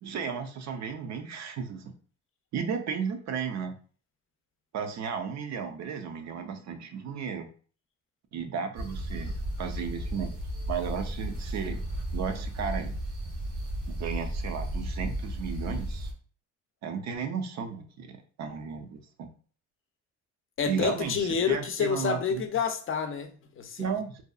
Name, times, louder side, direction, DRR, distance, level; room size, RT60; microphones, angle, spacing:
voice 1, 0.0-1.9 2.5-3.8 4.7-7.5 8.3-10.4 10.7-11.8 12.1-12.9 13.9-16.1 16.8-19.3 20.7-22.4 23.8-24.2, right 6 dB, 65° right, 0.5 m, -34 dB
sound 1, 8.7-16.1, right 1 dB, 80° right, 1.0 m, -34 dB
voice 2, 20.6-24.0, left 6 dB, 45° left, 0.5 m, -29 dB
2.7 x 2.2 x 2.3 m
cardioid pair, 90°, 30 cm